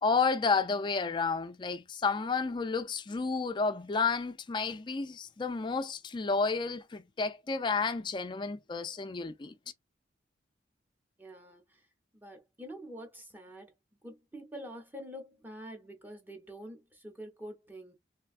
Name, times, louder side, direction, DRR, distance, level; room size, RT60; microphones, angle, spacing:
voice 1, 0.0-9.5, left 4 dB, 25° left, 0.3 m, -31 dB
voice 2, 11.2-11.9 12.1-13.7 14.0-17.9, equal, 10° right, 0.8 m, -46 dB
3.2 x 2.3 x 2.4 m
head